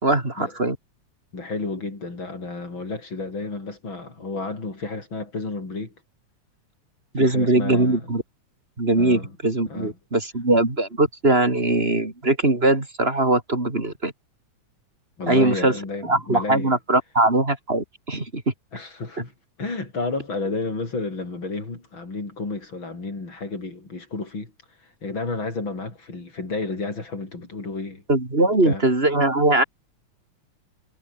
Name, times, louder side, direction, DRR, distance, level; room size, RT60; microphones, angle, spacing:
voice 1, 0.0-0.8 7.1-8.2 8.8-14.1 15.3-15.8 16.0-18.5 28.1-29.6, right 2 dB, 20° right, 3.9 m, -21 dB
voice 2, 1.3-5.9 7.2-8.0 9.0-9.3 9.7-9.9 15.2-16.8 18.7-19.3 19.6-24.5 25.0-28.0 28.4-28.8, left 3 dB, 40° left, 6.2 m, -31 dB
omnidirectional pair, 3.4 m